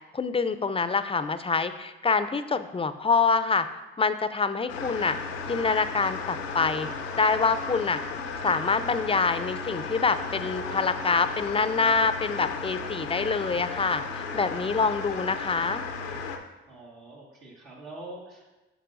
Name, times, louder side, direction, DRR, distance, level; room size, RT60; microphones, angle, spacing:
voice 1, 0.1-3.7 4.0-5.2 5.5-6.9 7.1-8.0 8.4-15.8, left 4 dB, 20° left, 12 dB, 0.4 m, -26 dB
sound 1, 4.7-16.4, left 5 dB, 85° left, 0.6 m, -35 dB
voice 2, 16.7-18.6, right 2 dB, 70° right, -4 dB, 1.5 m, -44 dB
8.8 x 6.5 x 2.5 m, 1.1 s
hypercardioid pair, 45°, 29 cm